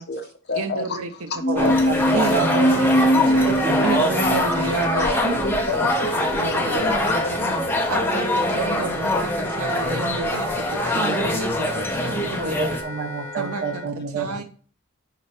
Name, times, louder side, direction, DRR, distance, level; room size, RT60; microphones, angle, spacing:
voice 1, 0.0-1.8 2.1-2.3 3.2-3.3 5.0-8.2 8.5-8.8 9.4-9.6 10.7-11.0 14.4-14.5, left 3 dB, 50° left, 5 dB, 1.2 m, -32 dB
voice 2, 0.6-1.1 1.5-1.7 2.1-3.5 3.8-5.6 6.1-6.8 7.3-7.4 7.9-12.6 13.4-13.8 14.1-14.4, right 4 dB, 75° right, 6 dB, 0.7 m, -30 dB
sound 1, 1.4-6.4, equal, 30° left, 2.0 m, -22 dB
voice 3, 1.5-3.8 12.1-14.4, right 3 dB, 45° right, 6 dB, 1.1 m, -30 dB
sound 2, 1.6-12.8, left 1 dB, 10° left, 1.3 m, -24 dB
Wind instrument woodwind instrument, 2.1-13.9, left 3 dB, 75° left, 1.6 m, -36 dB
10.5 x 4.1 x 3.3 m, 0.41 s
head